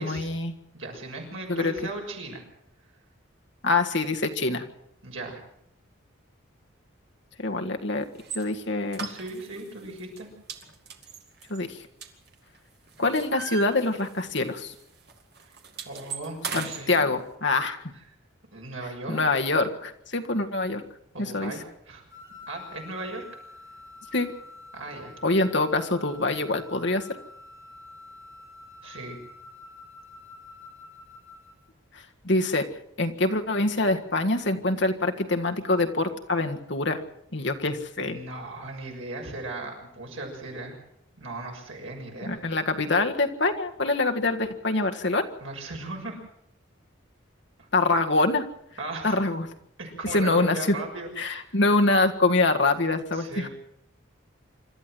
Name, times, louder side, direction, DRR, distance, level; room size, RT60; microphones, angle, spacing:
voice 1, 0.0-0.5 1.5-1.7 3.6-4.6 7.4-8.1 8.3-9.1 11.5-11.7 13.0-14.7 16.5-17.8 19.1-20.8 21.2-21.5 24.1-24.3 25.2-27.0 32.2-32.6 33.0-37.0 37.3-38.2 42.3-45.2 47.7-48.4 49.0-49.5 50.1-50.8 51.2-53.5, left 2 dB, 55° left, 5 dB, 1.7 m, -25 dB
voice 2, 0.7-2.4 5.0-5.4 9.0-10.3 15.8-17.1 17.9-18.0 18.5-19.4 21.1-21.6 21.9-22.0 22.5-23.2 24.7-25.1 28.8-29.2 38.0-40.8 41.2-42.3 45.4-46.2 47.6-47.7 48.8-49.2 49.8-51.6 53.1-53.5, right 2 dB, 80° right, 1 dB, 6.6 m, -37 dB
sound 1, 8.2-8.4 8.9-9.7 10.0-10.2 10.5-12.6 12.9-14.4 14.6-14.8 15.1-16.8, right 6 dB, 50° right, 2.2 m, -37 dB
sound 2, 22.1-31.7, left 3 dB, 15° right, 5.3 m, -47 dB
26.5 x 13.0 x 7.8 m, 0.75 s
head